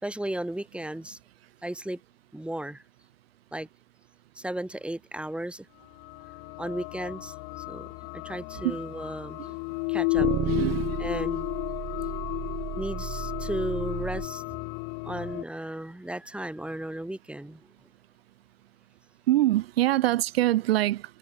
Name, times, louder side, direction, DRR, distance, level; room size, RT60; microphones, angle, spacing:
voice 1, 0.0-1.2 1.6-2.0 2.3-2.8 3.5-3.7 4.4-5.7 6.6-7.9 8.1-9.4 9.9-10.3 11.0-11.5 12.8-14.4 15.0-17.6, right 1 dB, 5° right, 6.9 m, -35 dB
sound 1, 6.0-15.4, left 40 dB or more, 55° left, 3.3 m, -33 dB
sound 2, 8.5-8.7 10.2-14.3, right 13 dB, 35° right, 2.2 m, -33 dB
voice 2, 10.5-11.0 19.3-21.0, right 15 dB, 75° right, 0.5 m, -24 dB
hypercardioid pair, 90°, 31 cm